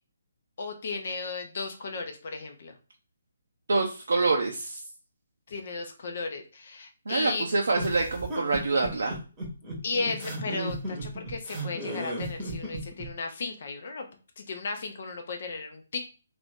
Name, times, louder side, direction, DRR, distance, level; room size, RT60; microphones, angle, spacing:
voice 1, 0.6-2.7 5.5-7.5 9.8-14.0 14.4-16.0, left 4 dB, 55° left, 4 dB, 0.6 m, -35 dB
voice 2, 3.7-4.8 7.1-9.2, right 3 dB, 70° right, 0 dB, 0.5 m, -26 dB
sound 1, 7.7-13.1, right 1 dB, 15° right, 1.0 m, -35 dB
2.6 x 2.6 x 3.5 m, 0.35 s
figure-of-eight pair, 140°, 0 cm